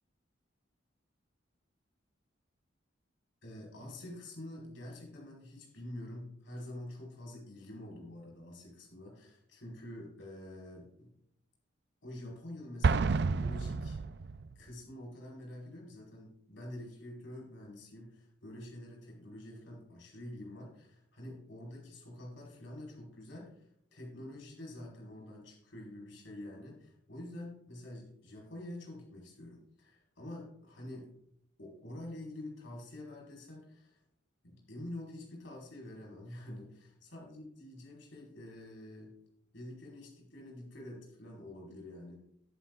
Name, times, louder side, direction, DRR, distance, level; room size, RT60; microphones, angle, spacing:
voice 1, 3.4-11.1 12.0-14.0 14.5-31.1 31.6-34.0 34.4-39.1 39.5-42.2, left 1 dB, 75° left, -2 dB, 4.5 m, -47 dB
Explosion, 12.8-14.6, right 4 dB, 55° right, 0.4 m, -30 dB
20.5 x 9.9 x 2.4 m, 0.72 s
head